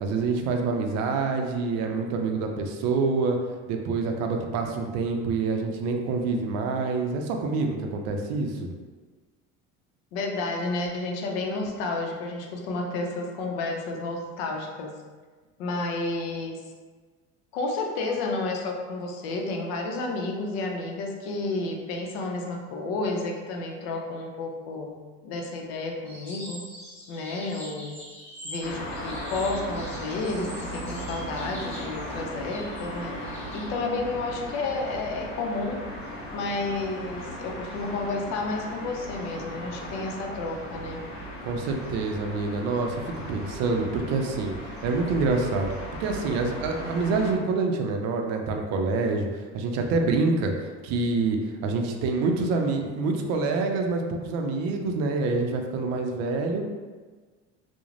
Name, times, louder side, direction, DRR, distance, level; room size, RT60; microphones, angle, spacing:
voice 1, 0.0-3.4 3.7-8.7 41.4-43.0 43.3-44.5 44.8-56.7, right 3 dB, 60° right, 3 dB, 0.4 m, -26 dB
voice 2, 10.1-15.0 15.6-16.6 17.5-26.7 27.1-28.0 28.4-35.8 36.3-41.0, left 3 dB, 85° left, 2 dB, 0.5 m, -31 dB
sound 1, 26.0-33.7, equal, 20° left, 1.0 m, -44 dB
sound 2, 28.6-47.3, equal, 50° left, 0.7 m, -37 dB
2.4 x 2.0 x 3.1 m, 1.4 s
cardioid pair, 150°, 29 cm